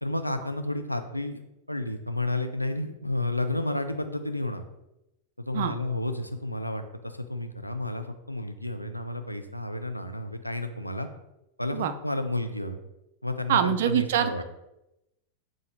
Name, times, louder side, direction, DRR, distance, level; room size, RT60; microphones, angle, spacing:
voice 1, 0.0-1.4 1.7-4.6 5.4-11.1 11.6-12.8 13.2-14.4, left 2 dB, 90° left, 7 dB, 0.4 m, -31 dB
voice 2, 13.5-14.4, right 10 dB, 55° right, 10 dB, 0.3 m, -24 dB
5.6 x 2.5 x 3.0 m, 0.90 s
figure-of-eight pair, 90°, 0 cm